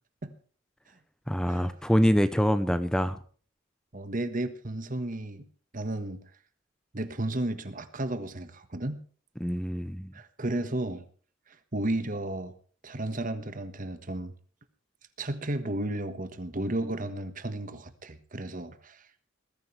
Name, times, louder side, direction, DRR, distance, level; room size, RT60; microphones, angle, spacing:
voice 1, 1.3-3.2 9.4-10.1, equal, 5° left, 12 dB, 0.8 m, -25 dB
voice 2, 3.9-5.5 5.7-6.2 6.9-9.0 10.1-11.0 11.5-12.5 12.8-14.3 15.2-19.1, right 1 dB, 40° right, 11 dB, 1.4 m, -33 dB
20.5 x 14.0 x 3.3 m, 0.42 s
head